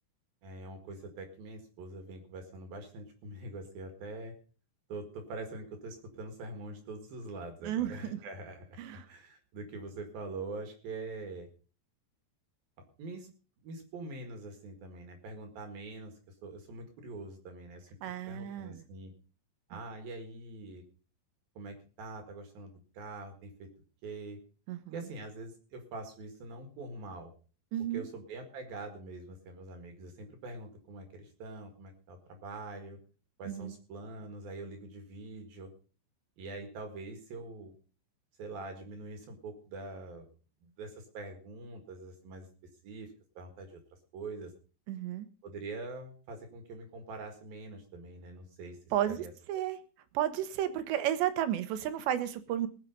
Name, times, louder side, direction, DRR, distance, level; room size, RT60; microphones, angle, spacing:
voice 1, 0.4-4.3 4.9-11.5 13.0-13.3 13.6-16.1 16.4-17.9 18.3-19.1 19.7-20.8 21.5-23.7 24.0-24.4 24.9-27.3 27.9-33.0 33.4-35.7 36.4-37.7 38.4-40.3 40.6-42.5 42.8-44.5 45.4-48.8 49.1-49.6, right 2 dB, 60° right, 5 dB, 3.3 m, -44 dB
voice 2, 7.6-8.2 8.8-9.1 18.0-18.8 19.7-19.8 24.7-25.0 27.7-28.1 33.5-33.8 44.9-45.3 48.9-49.8 50.1-52.7, right 11 dB, 75° right, 11 dB, 3.2 m, -33 dB
20.0 x 7.4 x 5.3 m, 0.38 s
omnidirectional pair, 5.3 m